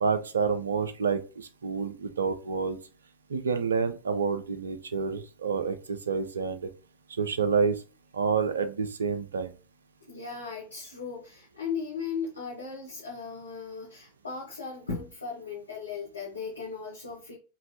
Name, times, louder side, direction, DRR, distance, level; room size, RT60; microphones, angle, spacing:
voice 1, 0.0-2.8 3.3-6.7 7.1-7.8 8.1-9.5, right 5 dB, 70° right, 10 dB, 0.4 m, -28 dB
voice 2, 10.1-17.3, left 5 dB, 75° left, -4 dB, 0.7 m, -37 dB
3.0 x 2.5 x 2.6 m, 0.34 s
figure-of-eight pair, 90°, 0 cm